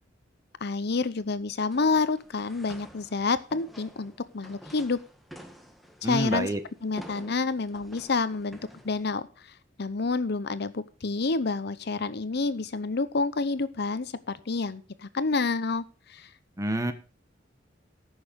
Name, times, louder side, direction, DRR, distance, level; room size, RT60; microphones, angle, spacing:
voice 1, 0.6-5.0 6.0-6.5 6.8-8.6 8.8-9.3 9.8-16.3, left 4 dB, 60° left, 14 dB, 0.7 m, -28 dB
sound 1, 1.7-9.0, equal, ahead, 1.4 m, -49 dB
voice 2, 6.0-6.6 16.6-16.9, right 1 dB, 15° right, 9 dB, 1.2 m, -27 dB
14.5 x 6.4 x 5.2 m, 0.34 s
head